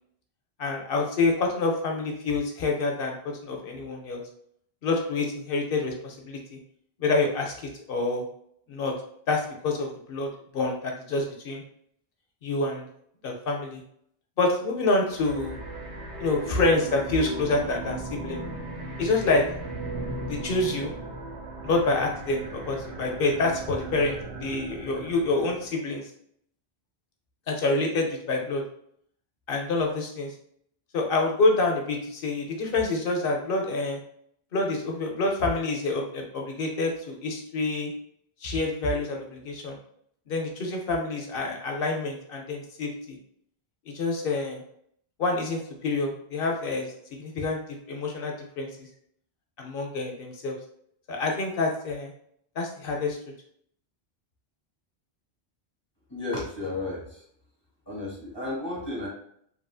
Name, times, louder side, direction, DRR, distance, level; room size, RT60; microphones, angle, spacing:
voice 1, 0.6-4.2 4.8-6.6 7.0-8.2 8.7-8.9 9.3-11.6 12.4-12.9 13.2-13.8 14.4-15.6 16.2-18.4 19.0-19.4 20.3-20.9 21.6-26.1 27.5-28.6 29.5-30.3 30.9-34.0 34.5-37.9 38.4-39.8 40.3-43.2 43.9-44.6 45.2-46.9 47.2-47.6 47.9-48.9 49.6-50.6 51.1-52.1 52.6-53.2, left 3 dB, 65° left, 1 dB, 0.8 m, -27 dB
sound 1, 15.1-25.7, right 2 dB, 55° right, 0.9 m, -37 dB
voice 2, 56.1-57.2 57.9-59.1, left 2 dB, 25° left, -5 dB, 1.2 m, -33 dB
3.0 x 2.5 x 2.3 m, 0.67 s
omnidirectional pair, 1.1 m